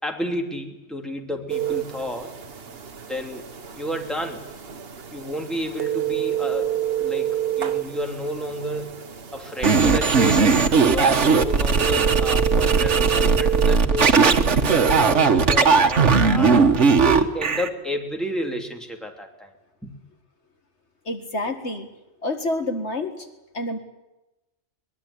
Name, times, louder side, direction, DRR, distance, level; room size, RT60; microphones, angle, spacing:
voice 1, 0.0-2.3 3.1-4.4 5.1-8.9 9.3-16.7 17.0-19.5 19.8-19.9, equal, ahead, 2 dB, 2.9 m, -31 dB
sound 1, 1.5-13.8, right 11 dB, 55° right, 1.4 m, -29 dB
sound 2, 9.6-17.7, right 4 dB, 70° right, 1.7 m, -18 dB
voice 2, 21.1-21.9 22.2-23.3 23.5-23.8, left 2 dB, 65° left, 6 dB, 2.3 m, -28 dB
22.0 x 21.5 x 10.0 m, 0.99 s
omnidirectional pair, 1.3 m